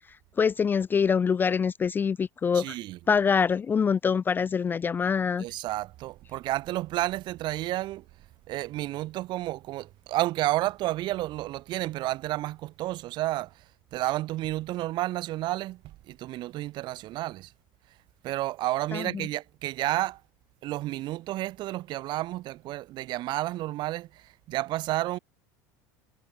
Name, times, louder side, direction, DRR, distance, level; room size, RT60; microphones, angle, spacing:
voice 1, 0.4-2.8 3.1-5.4 18.9-19.3, left 6 dB, 20° left, 0.3 m, -25 dB
voice 2, 2.5-3.0 5.4-8.0 8.5-13.6 13.9-17.5 18.2-20.2 20.6-25.2, right 16 dB, 55° right, 1.7 m, -31 dB
supercardioid pair, 115°, 9 cm